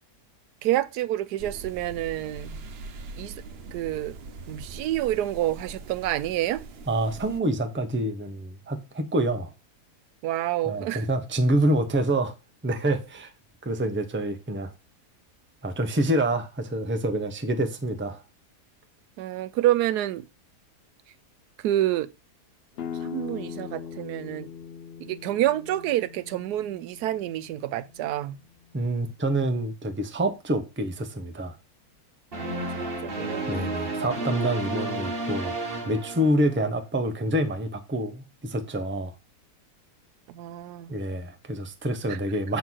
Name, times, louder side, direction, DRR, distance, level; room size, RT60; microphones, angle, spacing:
voice 1, 0.6-2.6 3.2-3.4 3.7-4.2 4.5-6.6 10.2-11.1 19.2-20.3 21.6-22.1 23.0-24.5 25.0-28.4 32.3-34.1 40.3-40.9 42.1-42.2, right 14 dB, 85° right, 1.1 m, -28 dB
sound 1, 1.4-7.4, right 3 dB, 60° right, 0.7 m, -42 dB
voice 2, 6.9-9.5 10.6-12.3 12.6-13.3 13.6-14.7 15.6-18.2 28.7-31.6 33.5-35.6 35.8-39.1 40.9-42.6, right 1 dB, 10° right, 0.6 m, -27 dB
sound 2, 22.8-28.3, left 7 dB, 65° left, 0.6 m, -40 dB
sound 3, 32.3-36.8, right 2 dB, 40° right, 1.5 m, -32 dB
7.5 x 3.7 x 6.2 m
omnidirectional pair, 1.7 m